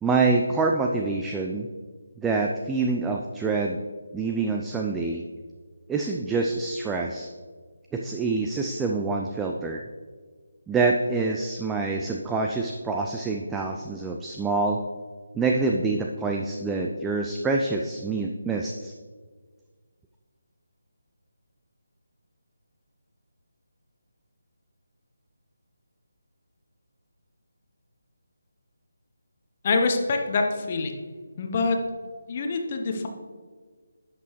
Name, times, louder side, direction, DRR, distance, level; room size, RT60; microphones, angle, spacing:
voice 1, 0.0-1.7 2.2-3.8 4.1-5.2 5.9-7.3 7.9-9.8 10.7-14.8 15.3-18.9, right 3 dB, 5° right, 1 dB, 0.3 m, -26 dB
voice 2, 29.6-30.9 31.4-31.8 32.3-33.1, left 3 dB, 30° left, 3 dB, 0.8 m, -25 dB
10.5 x 6.1 x 3.1 m, 1.5 s
figure-of-eight pair, 150°, 0 cm